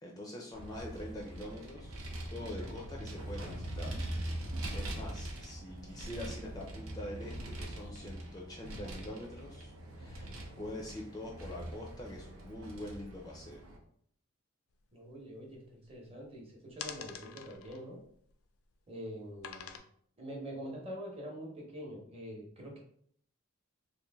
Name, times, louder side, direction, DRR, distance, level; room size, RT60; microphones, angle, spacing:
voice 1, 0.0-2.0 2.3-3.9 4.3-10.3 10.6-13.6, left 1 dB, 20° left, -1 dB, 0.4 m, -44 dB
Vehicle, 0.5-13.8, right 1 dB, 75° right, 0.7 m, -42 dB
sound 1, 14.8-14.9 15.1-16.3 16.7-18.7 19.4-19.8, left 8 dB, 85° left, 0.4 m, -46 dB
voice 2, 14.9-18.0 18.9-19.8 20.2-22.8, equal, 25° right, -2 dB, 0.9 m, -45 dB
3.1 x 2.5 x 3.4 m, 0.64 s
head